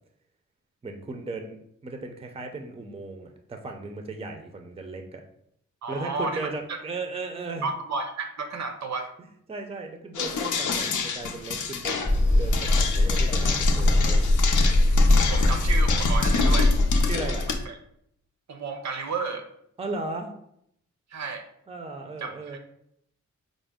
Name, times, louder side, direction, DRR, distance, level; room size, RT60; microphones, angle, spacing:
voice 1, 0.8-5.2 5.9-7.7 9.5-14.2 17.1-17.5 19.8-20.3 21.7-22.6, right 3 dB, 20° right, 4 dB, 0.5 m, -36 dB
voice 2, 5.8-6.8 7.6-9.1 15.1-16.7 17.6-17.8 18.5-19.5 21.1-21.4 22.2-22.6, right 4 dB, 65° right, 5 dB, 0.6 m, -32 dB
sound 1, 10.1-17.5, left 5 dB, 80° left, 0.6 m, -29 dB
sound 2, 12.1-17.7, left 2 dB, 25° left, 0.8 m, -21 dB
5.0 x 2.0 x 3.5 m, 0.73 s
wide cardioid pair, 85°, 30 cm